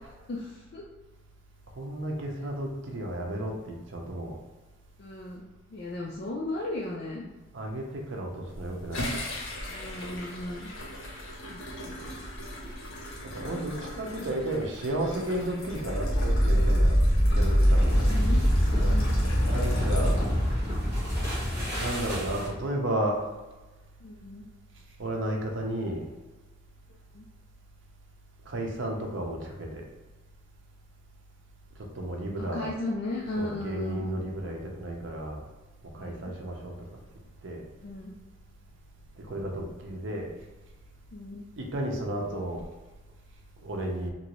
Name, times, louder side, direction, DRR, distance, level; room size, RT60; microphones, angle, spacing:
voice 1, 0.3-0.9 5.0-7.3 9.7-10.7 11.5-12.3 17.9-18.5 18.7-19.2 24.0-24.4 27.1-27.3 32.4-34.2 36.0-36.3 37.8-38.1 41.1-41.4, left 2 dB, 55° left, -3 dB, 0.4 m, -36 dB
voice 2, 1.8-4.4 7.5-9.1 13.2-17.0 17.4-17.8 19.5-20.2 21.8-23.3 25.0-26.1 28.4-29.9 31.8-32.7 33.4-35.5 35.9-36.8 37.4-37.6 39.2-40.3 41.6-42.7 43.6-44.1, right 1 dB, 70° right, 0 dB, 0.6 m, -33 dB
sound 1, 8.5-20.8, left 1 dB, 85° left, 0.8 m, -39 dB
sound 2, 15.8-22.6, equal, 15° right, 1.2 m, -24 dB
3.0 x 2.6 x 2.9 m, 1.2 s
head